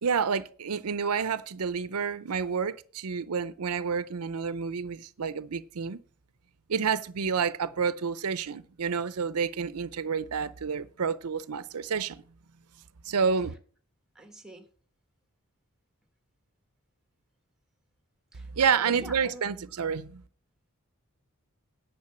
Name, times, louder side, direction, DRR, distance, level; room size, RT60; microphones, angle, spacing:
voice 1, 0.0-6.0 6.7-12.2 13.0-13.5 18.5-20.2, right 6 dB, 90° right, 0.6 m, -29 dB
voice 2, 14.1-14.7 18.3-19.5, right 1 dB, ahead, 1.4 m, -43 dB
9.6 x 5.7 x 6.8 m
head